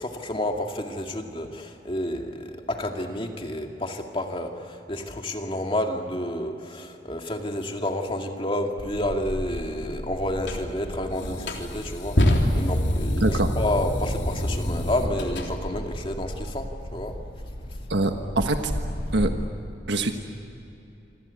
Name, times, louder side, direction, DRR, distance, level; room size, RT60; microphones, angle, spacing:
voice 1, 0.0-17.2, left 1 dB, 30° left, 3 dB, 2.3 m, -30 dB
sound 1, 8.8-19.4, equal, 60° left, 2.3 m, -35 dB
sound 2, 10.4-10.6 11.2-15.5, equal, 75° left, 3.4 m, -25 dB
voice 2, 17.9-18.7 19.1-19.3 19.9-20.2, right 2 dB, 80° right, 5 dB, 1.5 m, -24 dB
26.5 x 26.0 x 8.4 m, 2.9 s
head